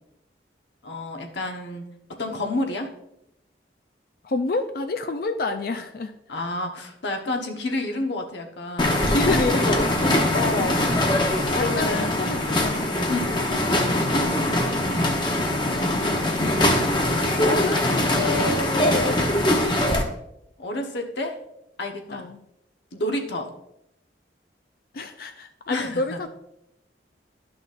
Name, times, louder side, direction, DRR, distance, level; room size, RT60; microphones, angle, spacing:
voice 1, 0.8-1.9 2.2-2.9 6.3-9.1 10.3-10.9 11.5-12.2 13.1-13.5 14.0-14.5 20.6-21.4 21.8-22.3 22.9-23.5 25.7-26.2, left 2 dB, 80° left, 3 dB, 1.1 m, -29 dB
voice 2, 4.2-6.1 8.8-10.2 11.5-13.1 13.5-13.6 15.8-16.5 17.4-19.7 22.1-22.4 24.9-26.3, left 3 dB, 55° left, 6 dB, 0.4 m, -29 dB
sound 1, 8.8-20.0, left 1 dB, 25° left, 0.8 m, -22 dB
12.0 x 6.0 x 2.5 m, 0.81 s
head